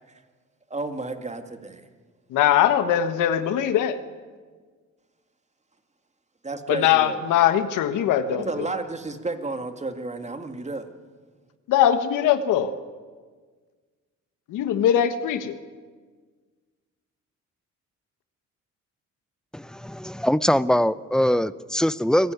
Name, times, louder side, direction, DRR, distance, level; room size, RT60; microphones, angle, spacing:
voice 1, 0.7-1.9 6.4-7.2 8.3-10.9, right 3 dB, 20° right, 7 dB, 2.2 m, -32 dB
voice 2, 2.3-4.0 6.7-8.4 11.7-12.7 14.5-15.6, left 10 dB, 90° left, 10 dB, 1.3 m, -21 dB
voice 3, 19.5-22.3, equal, ahead, 17 dB, 0.7 m, -22 dB
25.0 x 16.0 x 9.4 m, 1.5 s
cardioid pair, 90°, 30 cm